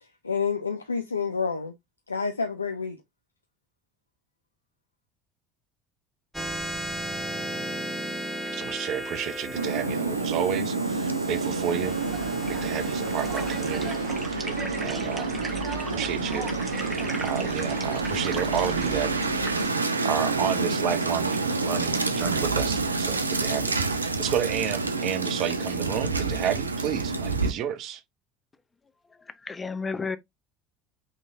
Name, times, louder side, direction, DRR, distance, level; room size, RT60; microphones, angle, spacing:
voice 1, 0.2-1.7 2.1-3.0, left 5 dB, 85° left, 0.4 m, -28 dB
sound 1, 6.3-17.2, equal, ahead, 1.0 m, -37 dB
voice 2, 8.5-11.9 12.2-13.9 14.3-14.5 14.8-15.4 15.9-19.3 20.0-28.0, right 10 dB, 50° right, 0.7 m, -31 dB
sound 2, 9.5-27.5, right 3 dB, 90° right, 0.4 m, -28 dB
sound 3, 11.8-19.7, right 3 dB, 25° right, 1.4 m, -37 dB
voice 3, 29.2-30.2, left 4 dB, 20° left, 0.7 m, -32 dB
5.5 x 3.2 x 2.5 m
figure-of-eight pair, 65°, 0 cm